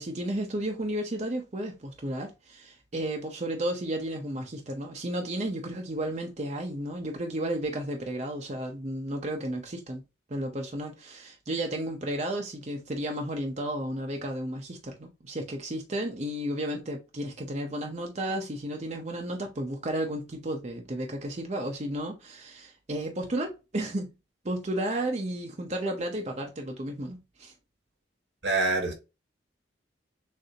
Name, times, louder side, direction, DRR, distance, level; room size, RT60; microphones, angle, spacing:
voice 1, 0.0-10.0 10.3-24.1 24.4-27.5, right 1 dB, 40° right, 0.7 m, -33 dB
voice 2, 28.4-28.9, right 3 dB, 80° right, 1.7 m, -25 dB
6.5 x 2.7 x 2.8 m
head